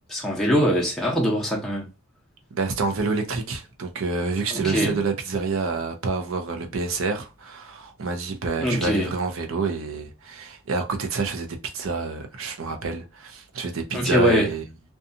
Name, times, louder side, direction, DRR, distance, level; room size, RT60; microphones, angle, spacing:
voice 1, 0.1-1.9 4.5-5.0 8.6-9.1 13.9-14.5, equal, ahead, 0.7 m, -22 dB
voice 2, 2.5-14.6, right 4 dB, 70° right, 0.6 m, -28 dB
2.6 x 2.3 x 2.6 m
head